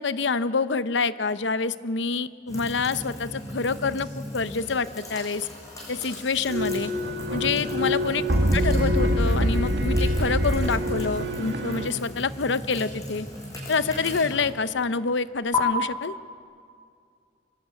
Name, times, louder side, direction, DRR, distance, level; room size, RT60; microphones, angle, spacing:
voice 1, 0.0-5.5 5.9-6.9 7.3-8.2 8.5-13.3 13.7-16.1, left 4 dB, 70° left, 14 dB, 0.8 m, -27 dB
sound 1, 2.5-15.6, left 2 dB, 20° left, 6.5 m, -37 dB
sound 2, 6.5-11.9, equal, 60° right, 2.2 m, -25 dB
25.5 x 20.0 x 8.4 m, 2.2 s
head